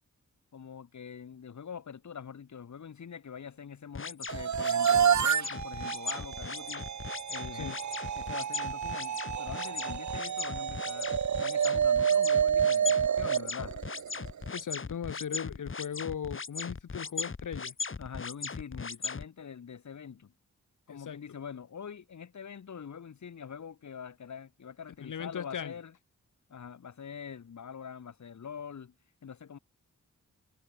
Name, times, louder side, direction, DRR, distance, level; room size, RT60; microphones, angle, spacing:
voice 1, 0.5-6.9 7.3-7.8 8.1-11.1 11.4-13.8 18.0-20.3 20.9-25.9 26.5-28.9 29.2-29.6, left 7 dB, 70° left, 3.3 m, -44 dB
sound 1, 3.9-19.2, left 4 dB, 40° left, 4.6 m, -38 dB
sound 2, 4.3-14.5, right 8 dB, 70° right, 1.4 m, -29 dB
voice 2, 14.5-17.7 20.9-21.2 25.0-25.8, left 8 dB, 85° left, 3.0 m, -38 dB
wide cardioid pair, 120°, 30 cm